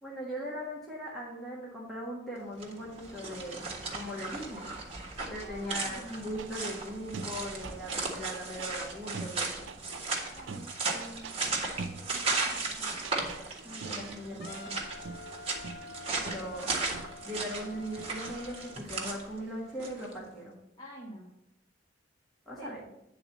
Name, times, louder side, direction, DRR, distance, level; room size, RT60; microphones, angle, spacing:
voice 1, 0.0-3.7 3.9-4.7 5.3-9.5 13.6-14.8 16.2-16.7 17.2-20.6 22.5-22.8, equal, ahead, -6 dB, 1.4 m, -39 dB
sound 1, 2.5-20.1, right 3 dB, 30° right, 1.5 m, -36 dB
voice 2, 5.3-6.5 10.2-13.2 16.0-16.7 20.8-21.3 22.6-22.7, right 1 dB, 25° left, -5 dB, 1.7 m, -49 dB
sound 2, 6.4-6.8 7.1-8.7 9.1-10.1 10.3-11.4 11.8-12.7 13.0-18.3, right 4 dB, 80° right, 0.5 m, -45 dB
Wind instrument woodwind instrument, 14.4-18.9, left 3 dB, 55° left, 0.5 m, -48 dB
9.0 x 4.0 x 7.1 m, 0.83 s
head